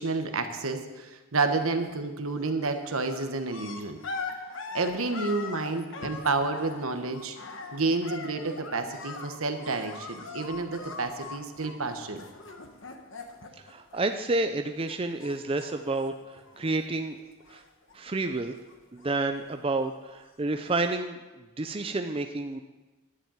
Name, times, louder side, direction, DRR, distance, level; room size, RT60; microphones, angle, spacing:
voice 1, 0.0-4.0 4.7-7.4 7.7-12.2, right 3 dB, 75° right, 7 dB, 1.2 m, -30 dB
sound 1, 1.6-2.0 2.3-14.6 14.9-17.0 17.3-18.0 18.3-20.1 20.8-20.9, left 4 dB, 60° left, 1.3 m, -42 dB
voice 2, 13.7-16.1 16.6-17.2 17.5-17.6 17.9-18.5 18.9-21.2 21.6-22.6, right 2 dB, 25° right, 6 dB, 0.5 m, -29 dB
11.0 x 7.5 x 9.0 m, 1.2 s
head